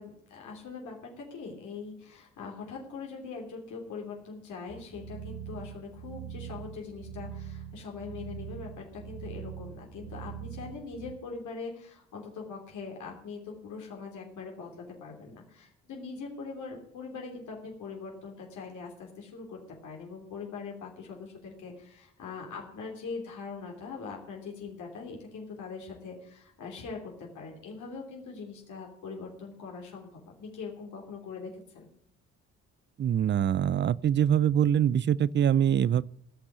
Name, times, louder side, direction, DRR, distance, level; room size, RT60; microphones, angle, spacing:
voice 1, 0.0-31.9, left 4 dB, 75° left, 3.0 m, -42 dB
sound 1, 4.7-11.1, right 8 dB, 65° right, 4.4 m, -42 dB
voice 2, 33.0-36.1, right 9 dB, 40° right, 0.4 m, -24 dB
16.0 x 6.0 x 7.9 m
cardioid pair, 90°, 30 cm